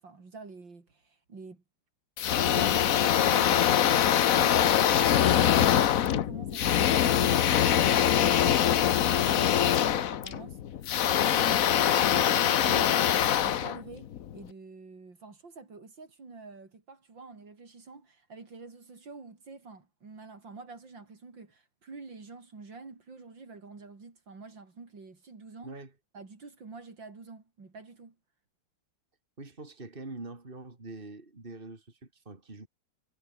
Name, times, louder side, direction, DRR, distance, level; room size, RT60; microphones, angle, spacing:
voice 1, 0.0-1.6 2.3-4.0 4.3-5.8 6.1-25.8 26.1-28.2, right 4 dB, 75° right, 4.6 m, -47 dB
sound 1, 2.2-14.4, left 10 dB, 55° left, 1.1 m, -23 dB
voice 2, 29.4-32.7, right 2 dB, 25° right, 3.6 m, -44 dB
omnidirectional pair, 2.0 m